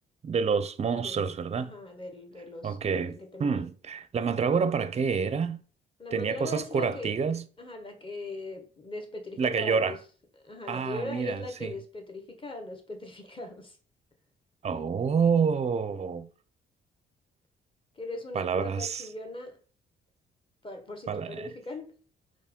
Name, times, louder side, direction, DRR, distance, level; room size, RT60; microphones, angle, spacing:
voice 1, 0.2-1.7 2.6-5.6 6.1-7.4 9.4-10.0 10.7-11.7 14.6-16.3 18.3-19.1 21.1-21.5, right 6 dB, 35° right, 0.5 m, -28 dB
voice 2, 1.6-2.8 3.1-3.7 6.0-7.2 7.6-10.0 10.4-13.8 18.0-19.6 20.6-22.0, left 1 dB, 25° left, 1.3 m, -39 dB
4.4 x 3.1 x 3.7 m
cardioid pair, 90°, 20 cm